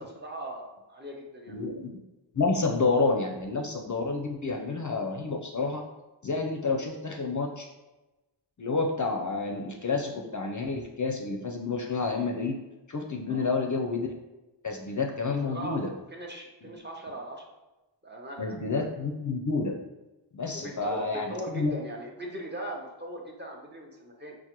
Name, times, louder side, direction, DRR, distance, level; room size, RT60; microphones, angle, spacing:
voice 1, 0.0-1.6 13.3-13.5 15.5-15.8 16.1-17.5 18.0-18.6 20.5-24.3, right 1 dB, 25° right, 0 dB, 0.6 m, -39 dB
voice 2, 1.5-1.9 2.3-5.8 6.2-7.7 8.6-12.6 12.9-14.1 14.6-15.9 16.6-16.7 18.4-19.8 20.3-21.7, left 3 dB, 45° left, 2 dB, 0.4 m, -29 dB
4.5 x 2.1 x 2.9 m, 1.0 s
wide cardioid pair, 45°, 46 cm